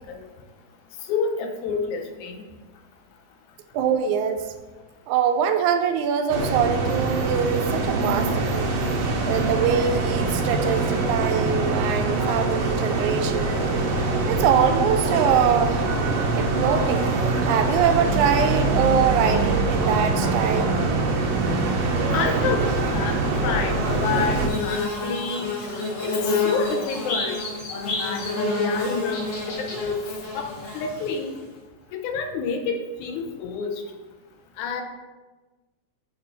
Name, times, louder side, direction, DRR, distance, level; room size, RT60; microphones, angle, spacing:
voice 1, 1.1-2.5 22.1-23.2 23.4-25.5 26.0-27.4 27.7-30.0 30.3-31.3 31.9-33.8 34.6-34.8, left 5 dB, 85° left, 4 dB, 2.2 m, -29 dB
voice 2, 3.7-4.5 5.1-8.8 9.3-13.6 14.3-15.9 16.4-17.1 17.4-20.8, right 7 dB, 85° right, 7 dB, 2.0 m, -23 dB
sound 1, 6.3-24.5, right 3 dB, 70° right, 2.0 m, -24 dB
Bird / Buzz, 23.7-31.4, left 3 dB, 60° left, 2.5 m, -28 dB
6.6 x 3.4 x 5.3 m, 1.2 s
omnidirectional pair, 3.4 m